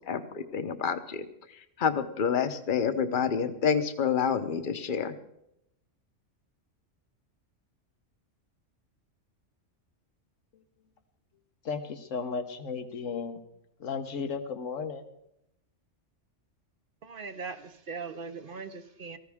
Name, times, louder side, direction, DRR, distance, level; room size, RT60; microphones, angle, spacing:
voice 1, 0.1-1.2 1.8-5.1, left 7 dB, 45° left, 9 dB, 1.0 m, -28 dB
voice 2, 11.6-13.4 13.8-15.0, left 5 dB, 85° left, 8 dB, 1.5 m, -34 dB
voice 3, 17.0-19.2, right 4 dB, 50° right, 9 dB, 0.9 m, -40 dB
18.5 x 14.5 x 3.6 m, 0.79 s
omnidirectional pair, 1.3 m